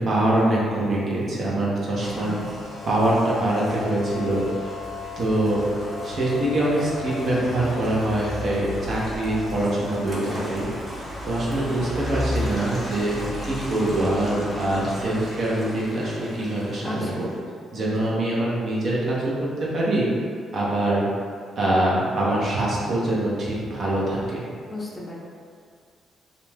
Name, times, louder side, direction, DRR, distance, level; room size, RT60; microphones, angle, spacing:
voice 1, 0.0-2.4 2.8-4.6 5.2-5.6 6.0-10.7 11.2-17.3 17.7-19.2 19.7-20.1 20.5-21.1 21.6-24.5, right 1 dB, 55° right, -6 dB, 0.8 m, -24 dB
voice 2, 1.9-2.5 16.8-17.3 17.7-18.1 24.7-25.2, left 2 dB, 25° left, -4 dB, 0.5 m, -35 dB
Rain, 2.0-17.4, left 1 dB, 20° right, 0.8 m, -34 dB
2.5 x 2.2 x 3.2 m, 2.1 s
cardioid pair, 90°, 0 cm